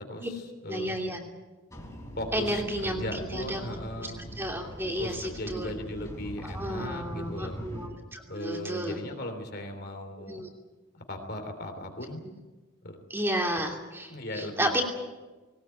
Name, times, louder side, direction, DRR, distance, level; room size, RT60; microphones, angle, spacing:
voice 1, 0.1-1.0 2.2-4.2 5.0-7.6 8.3-10.4 11.1-12.2 12.8-13.0 14.1-14.7, left 1 dB, 45° left, 5 dB, 3.3 m, -37 dB
voice 2, 0.7-1.2 2.3-3.6 4.4-5.7 6.5-9.0 10.3-10.5 13.1-14.8, right 1 dB, 10° right, 1 dB, 2.9 m, -32 dB
sound 1, 1.7-7.9, equal, 15° left, 3.6 m, -42 dB
20.5 x 19.5 x 9.2 m, 1.2 s
head